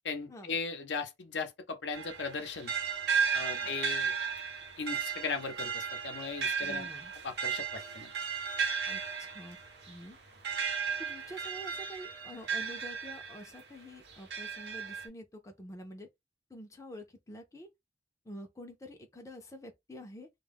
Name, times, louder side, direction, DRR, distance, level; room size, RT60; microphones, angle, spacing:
voice 1, 0.0-2.7 3.3-4.1 4.8-6.9 7.2-8.1, left 4 dB, 90° left, 0.7 m, -37 dB
sound 1, 1.9-13.6 14.1-15.1, right 6 dB, 65° right, 0.6 m, -35 dB
voice 2, 6.6-7.1 8.9-9.6 9.9-10.2 11.0-16.1 16.5-17.7 18.2-20.3, equal, 20° left, 0.4 m, -47 dB
2.2 x 2.0 x 3.3 m
head